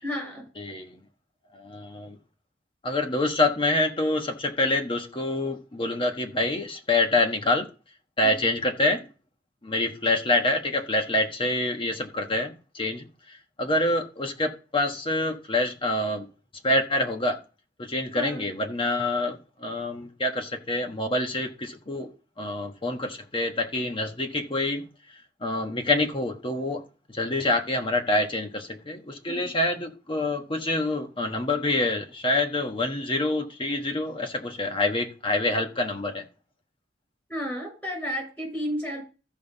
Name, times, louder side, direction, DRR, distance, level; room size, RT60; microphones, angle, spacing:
voice 1, 0.0-0.5 8.2-8.4 18.1-18.5 29.3-29.5 37.3-39.0, equal, 10° left, 6.5 m, -32 dB
voice 2, 0.6-1.0 1.5-2.2 2.8-7.7 8.2-9.1 9.6-16.3 16.6-17.4 17.8-22.1 22.4-24.8 25.4-26.8 27.1-36.2, left 2 dB, 30° left, 1.3 m, -26 dB
14.0 x 5.7 x 4.0 m
head